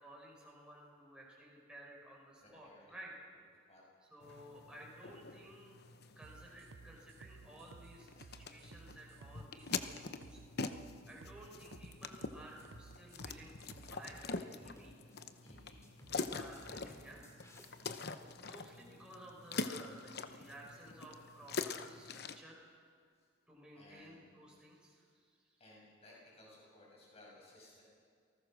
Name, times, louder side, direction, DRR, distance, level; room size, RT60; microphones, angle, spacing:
voice 1, 0.0-3.1 4.1-5.8 6.1-10.4 11.1-14.9 16.3-17.3 17.9-18.0 18.4-22.6 23.5-25.6, right 1 dB, 5° right, -4 dB, 5.7 m, -55 dB
voice 2, 2.4-3.0 3.7-3.8 9.2-9.5 15.4-15.8 23.2-23.3 23.7-24.3 25.6-27.8, left 1 dB, 30° left, -4 dB, 7.4 m, -60 dB
sound 1, 4.2-22.4, left 4 dB, 50° left, 0.9 m, -45 dB
sound 2, 6.2-14.0, right 4 dB, 65° right, 0.6 m, -57 dB
sound 3, 12.6-12.9 13.2-13.4 14.0-14.3 14.6-15.2 15.5-18.3, equal, 15° left, 2.6 m, -59 dB
29.0 x 19.5 x 6.4 m, 2.1 s
head